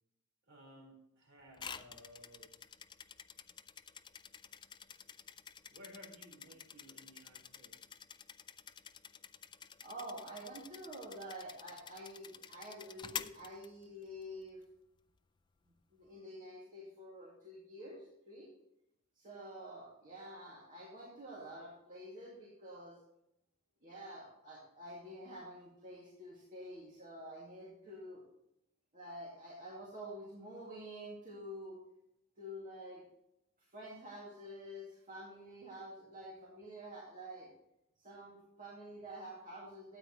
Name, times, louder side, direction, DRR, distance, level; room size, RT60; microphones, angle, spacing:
voice 1, 0.5-2.5 5.7-7.8, equal, 60° right, -1 dB, 4.2 m, -57 dB
sound 1, 1.6-14.2, left 7 dB, 20° left, 0.3 m, -50 dB
voice 2, 9.8-14.6 15.9-18.5 19.2-22.9 23.8-28.2 28.9-31.8 32.4-33.0 33.7-37.5 38.0-40.0, equal, 35° right, -5 dB, 2.2 m, -48 dB
13.0 x 8.9 x 3.0 m, 0.85 s
head